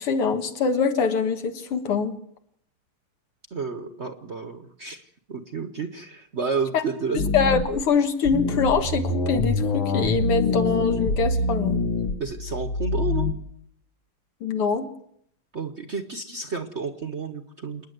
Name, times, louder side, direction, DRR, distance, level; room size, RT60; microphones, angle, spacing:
voice 1, 0.0-2.2 6.7-6.8 7.1-11.8 14.4-14.9, left 5 dB, 85° left, 7 dB, 2.6 m, -24 dB
voice 2, 3.5-7.3 12.2-13.3 15.5-17.8, right 4 dB, 45° right, 9 dB, 0.9 m, -31 dB
sound 1, 7.2-7.8 8.3-13.3, left 3 dB, 65° left, 2.0 m, -25 dB
27.5 x 10.0 x 9.4 m, 0.71 s
omnidirectional pair, 2.4 m